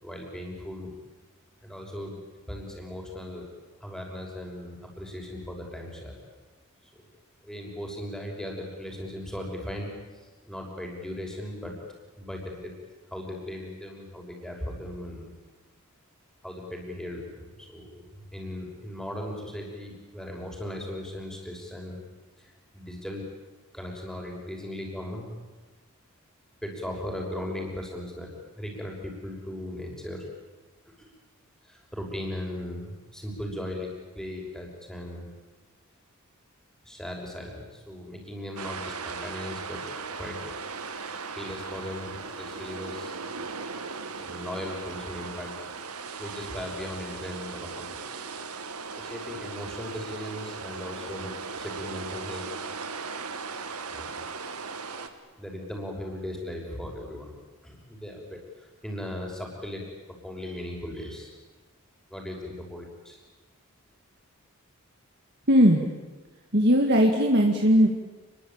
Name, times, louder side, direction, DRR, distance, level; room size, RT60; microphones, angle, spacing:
voice 1, 0.0-0.9 1.6-3.4 3.8-6.2 6.9-7.1 7.4-11.8 12.2-12.7 13.1-15.3 16.4-22.0 22.4-23.2 23.7-25.3 26.6-30.3 31.0-31.1 31.6-35.3 36.8-39.8 40.2-40.4 41.4-43.2 44.2-45.5 46.2-48.0 48.9-52.5 53.9-54.3 55.4-57.4 57.6-61.3 62.1-63.2, left 1 dB, 5° left, 0 dB, 5.9 m, -38 dB
sound 1, 38.6-55.1, right 4 dB, 90° right, 2.3 m, -38 dB
voice 2, 65.5-65.9 66.5-67.9, equal, 50° right, 2 dB, 2.2 m, -19 dB
29.0 x 22.0 x 8.9 m, 1.2 s
head